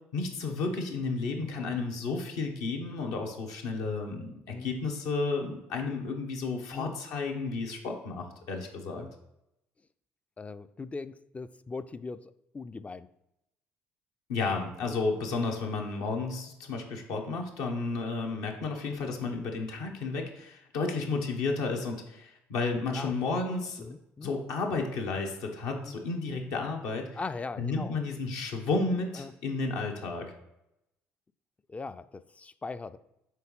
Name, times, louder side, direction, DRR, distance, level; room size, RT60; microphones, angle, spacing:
voice 1, 0.1-9.0 14.3-23.8 24.2-27.1 27.6-30.3, left 3 dB, 75° left, 2 dB, 1.0 m, -32 dB
voice 2, 10.4-13.1 22.9-23.1 23.8-24.3 25.8-25.9 27.1-28.0 29.2-29.3 31.7-33.0, left 4 dB, 25° left, 13 dB, 0.3 m, -40 dB
4.5 x 3.9 x 5.4 m, 0.86 s
hypercardioid pair, 60°, 6 cm